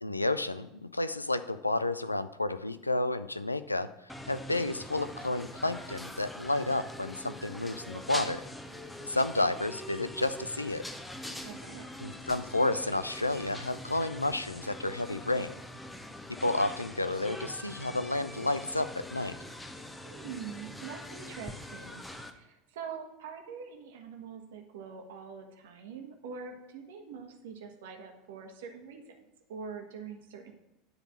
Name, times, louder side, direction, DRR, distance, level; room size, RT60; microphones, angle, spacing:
voice 1, 0.0-3.9 4.3-8.4 9.0-10.9 12.0-15.6 16.3-19.4, left 2 dB, 85° left, 13 dB, 0.4 m, -31 dB
sound 1, 4.1-22.3, left 1 dB, 10° left, 0.8 m, -43 dB
voice 2, 11.4-11.9 20.0-22.1 22.3-29.0 29.5-30.5, right 6 dB, 65° right, 4 dB, 1.3 m, -44 dB
9.8 x 4.0 x 7.4 m, 0.91 s
figure-of-eight pair, 75°, 0 cm